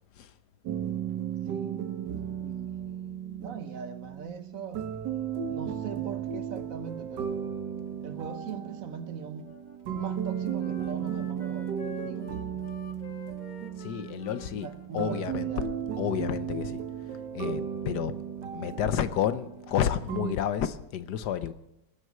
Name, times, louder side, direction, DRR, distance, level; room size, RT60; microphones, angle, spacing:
sound 1, 0.6-20.3, right 8 dB, 75° right, 1.6 m, -35 dB
voice 1, 1.5-2.1 2.4-5.0 5.5-7.4 8.0-9.5 9.9-12.3 14.6-15.7, right 6 dB, 55° right, 1.3 m, -41 dB
Wind instrument woodwind instrument, 9.4-15.8, left 3 dB, 35° left, 0.8 m, -48 dB
voice 2, 13.8-14.7 14.9-15.5 16.0-16.8 17.3-18.1 18.5-21.5, left 9 dB, 70° left, 1.4 m, -30 dB
19.5 x 7.8 x 7.9 m
omnidirectional pair, 1.9 m